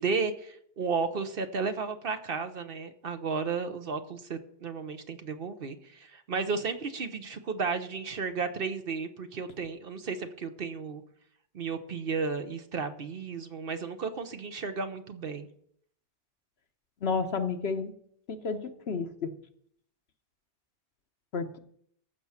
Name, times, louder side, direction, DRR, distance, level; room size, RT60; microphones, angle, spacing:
voice 1, 0.0-11.0 11.5-15.5, right 5 dB, 55° right, 8 dB, 1.0 m, -33 dB
voice 2, 17.0-17.9 18.3-18.6 18.9-19.3 21.3-21.6, left 5 dB, 60° left, 8 dB, 1.1 m, -30 dB
14.5 x 6.0 x 5.8 m, 0.66 s
omnidirectional pair, 1.2 m